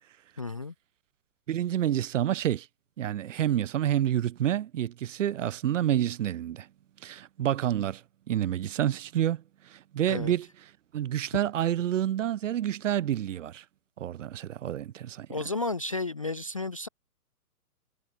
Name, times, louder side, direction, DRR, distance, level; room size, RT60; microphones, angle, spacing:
voice 1, 0.4-0.7 10.1-10.3 15.3-16.9, left 3 dB, 25° left, 0.3 m, -32 dB
voice 2, 1.5-2.7 3.0-6.7 7.0-8.0 8.3-10.5 10.9-13.6 14.0-15.4, right 11 dB, 55° right, 1.2 m, -28 dB
hypercardioid pair, 135°, 45 cm